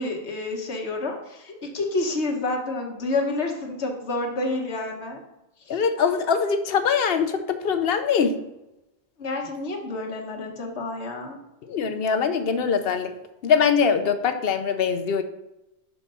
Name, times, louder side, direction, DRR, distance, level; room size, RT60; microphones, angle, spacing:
voice 1, 0.0-5.2 5.7-5.8 9.2-11.4, left 2 dB, 85° left, 2 dB, 1.4 m, -29 dB
voice 2, 5.7-8.4 11.7-13.1 13.4-15.2, left 6 dB, 65° left, 8 dB, 0.8 m, -22 dB
5.9 x 4.7 x 5.4 m, 0.93 s
omnidirectional pair, 1.1 m